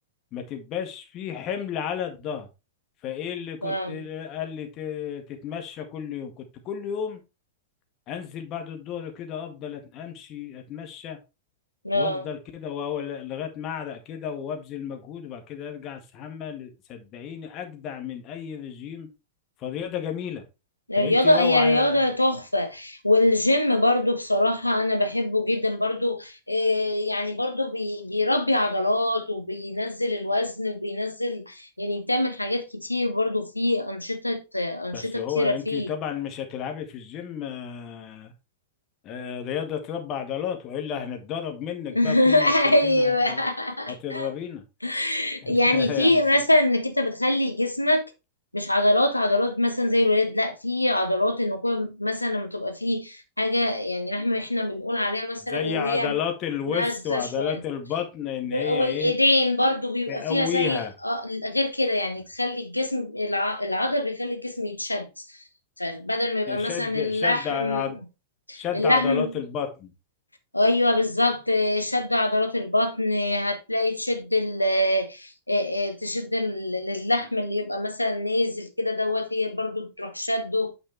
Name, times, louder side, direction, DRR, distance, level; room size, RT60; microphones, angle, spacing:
voice 1, 0.3-2.5 3.0-7.2 8.1-11.2 11.9-19.1 19.6-20.4 21.0-22.0 34.9-38.3 39.0-42.5 42.8-43.4 43.9-44.6 45.4-46.2 55.5-59.1 60.1-60.9 66.5-68.0 68.5-69.9, left 8 dB, 35° left, 1.8 m, -32 dB
voice 2, 3.6-4.0 11.8-12.3 20.9-35.9 41.9-44.3 44.8-48.0 48.5-56.2 56.7-57.6 58.5-65.2 65.8-67.8 68.5-69.3 70.5-80.7, left 1 dB, 85° left, 1.1 m, -24 dB
8.9 x 5.4 x 3.3 m
figure-of-eight pair, 90°, 0 cm